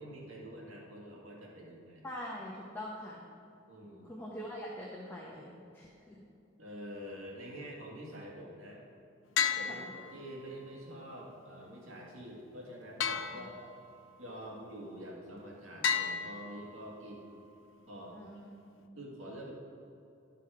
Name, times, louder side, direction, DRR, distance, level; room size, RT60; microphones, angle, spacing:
voice 1, 0.0-2.1 3.7-4.1 6.6-8.8 9.6-13.7 14.2-17.3 17.9-18.2 18.9-19.5, equal, 90° right, -3 dB, 1.9 m, -46 dB
voice 2, 2.0-3.3 4.0-6.2 9.6-9.9 13.3-13.4 18.1-18.5, equal, 10° left, -4 dB, 0.9 m, -44 dB
sound 1, 9.4-10.6 13.0-14.1 15.8-17.1, left 7 dB, 70° left, 0.5 m, -34 dB
12.0 x 5.8 x 4.8 m, 2.7 s
head